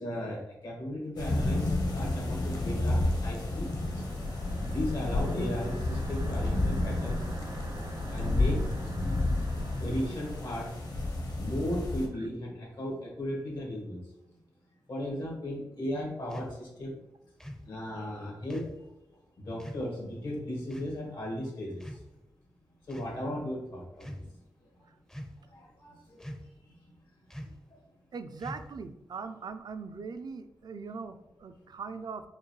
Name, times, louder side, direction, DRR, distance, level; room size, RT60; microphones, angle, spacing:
voice 1, 0.0-4.0 4.6-8.9 9.7-10.7 11.3-14.0 14.9-17.0 17.6-18.9 19.4-22.0 22.9-24.3 24.7-24.8 25.5-26.3 26.7-26.9 27.4-27.8, equal, 75° left, -1 dB, 1.4 m, -36 dB
sound 1, 1.2-12.1, left 2 dB, 55° left, 0.9 m, -31 dB
sound 2, 3.0-11.6, equal, 75° right, 0.8 m, -44 dB
sound 3, 16.3-16.6 17.4-17.7 18.5-18.8 19.6-19.9 20.7-21.0 21.8-22.3 22.9-23.2 23.9-24.3 25.1-25.5 26.2-26.6 27.3-27.6 28.4-28.9, equal, 10° left, 0.5 m, -43 dB
voice 2, 28.1-32.2, right 5 dB, 60° right, 9 dB, 0.4 m, -40 dB
4.9 x 2.2 x 3.1 m, 0.89 s
cardioid pair, 50°, 8 cm